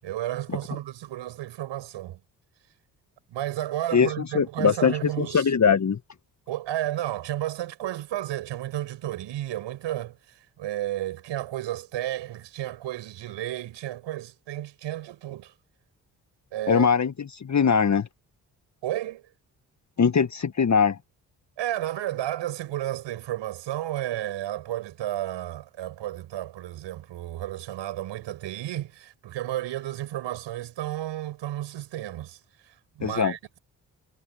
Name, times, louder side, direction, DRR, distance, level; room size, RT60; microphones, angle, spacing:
voice 1, 0.0-2.2 3.3-5.5 6.5-15.5 16.5-16.9 18.8-19.2 21.6-32.4 32.6-33.6, right 13 dB, 75° right, 6.7 m, -32 dB
voice 2, 3.9-6.0 16.7-18.1 20.0-21.0 33.0-33.3, left 6 dB, 40° left, 1.5 m, -22 dB
hypercardioid pair, 40°, 44 cm